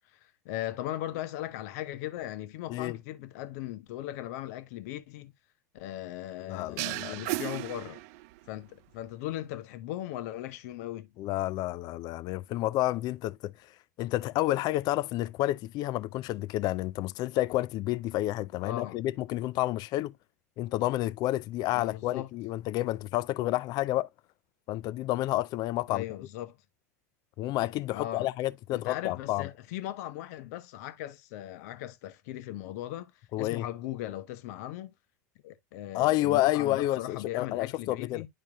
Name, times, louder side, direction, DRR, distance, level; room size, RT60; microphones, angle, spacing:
voice 1, 0.1-5.3 5.7-8.0 8.5-11.1 18.6-19.0 21.7-22.3 25.9-26.6 27.9-28.3 28.7-33.1 33.4-34.9 35.4-38.3, left 13 dB, 65° left, 1.1 m, -38 dB
voice 2, 6.5-7.3 11.2-13.5 14.0-20.1 20.6-24.1 24.7-26.0 27.4-29.5 33.3-33.7 35.9-38.2, left 16 dB, 45° left, 0.5 m, -30 dB
sound 1, 6.8-8.5, right 21 dB, 60° right, 0.5 m, -35 dB
11.0 x 4.5 x 2.4 m
hypercardioid pair, 90°, 9 cm